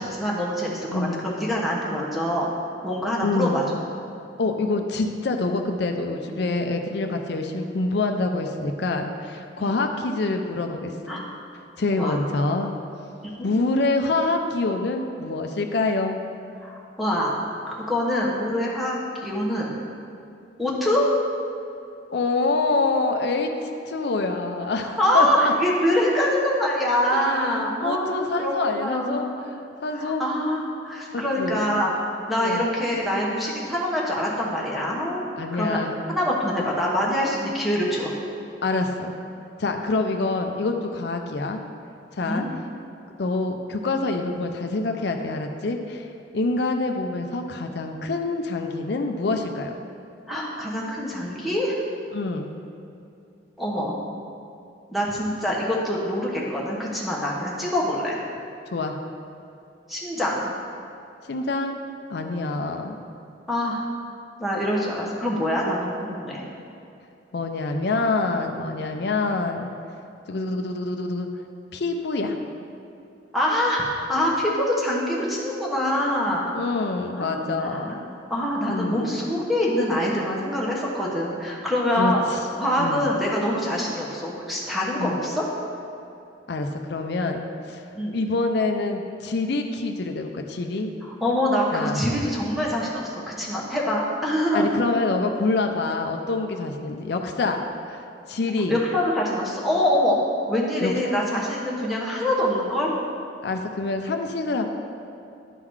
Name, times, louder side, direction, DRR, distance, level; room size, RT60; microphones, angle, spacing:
voice 1, 0.0-2.5 2.8-3.8 9.6-9.7 11.1-11.2 11.9-12.2 13.4-13.5 16.6-17.4 17.7-19.8 20.6-21.1 24.8-29.2 30.0-31.9 32.3-35.8 36.1-38.1 42.3-42.5 50.3-51.8 53.6-53.9 54.9-58.2 59.9-60.5 63.5-63.9 64.4-66.4 73.3-76.5 77.1-78.0 78.3-82.2 82.6-85.5 87.9-88.1 91.2-94.7 98.7-100.2 100.5-102.9, left 1 dB, ahead, -5 dB, 1.0 m, -25 dB
voice 2, 0.9-1.3 3.2-3.6 4.4-11.2 11.8-12.7 13.4-16.2 22.1-25.5 27.1-29.3 29.8-30.2 31.1-31.6 32.4-32.7 35.4-36.0 38.6-39.2 39.6-41.6 42.1-42.5 43.2-46.1 46.3-49.7 52.1-52.5 58.7-59.0 61.3-61.8 62.1-62.9 67.3-69.7 70.3-71.3 71.7-72.4 76.5-78.1 78.7-79.1 82.0-82.4 82.8-83.1 85.0-85.2 86.5-87.8 88.1-90.9 91.7-92.1 94.5-97.6 97.8-98.0 98.3-98.7 100.8-101.2 103.4-104.7, left 3 dB, 60° left, 4 dB, 0.5 m, -26 dB
11.0 x 3.8 x 4.7 m, 2.7 s
head